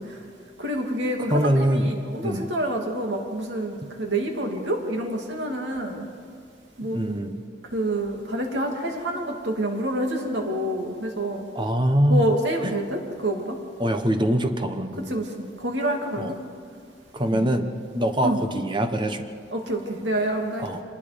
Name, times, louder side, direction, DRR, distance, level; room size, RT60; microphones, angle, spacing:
voice 1, 0.6-6.1 6.8-7.0 7.7-11.5 12.1-13.6 15.1-16.4 17.3-17.4 18.2-18.4 19.5-20.7, right 1 dB, 85° right, 2 dB, 2.8 m, -27 dB
voice 2, 1.2-2.5 6.8-7.4 11.5-12.3 12.6-12.7 13.8-15.2 16.2-16.3 17.1-19.3 20.6-20.8, equal, 25° right, 7 dB, 1.2 m, -24 dB
26.0 x 20.0 x 5.3 m, 2.2 s
head